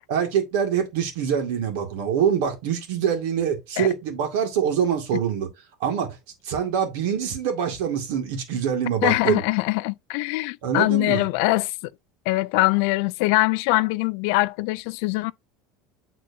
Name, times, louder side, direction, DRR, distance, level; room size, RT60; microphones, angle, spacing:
voice 1, 0.1-5.5 5.8-6.2 6.4-9.4 10.6-11.3, right 8 dB, 70° right, 2.2 m, -24 dB
voice 2, 9.0-11.7 12.3-15.3, left 21 dB, 60° left, 0.3 m, -22 dB
9.3 x 3.8 x 2.7 m
cardioid pair, 170°, 0 cm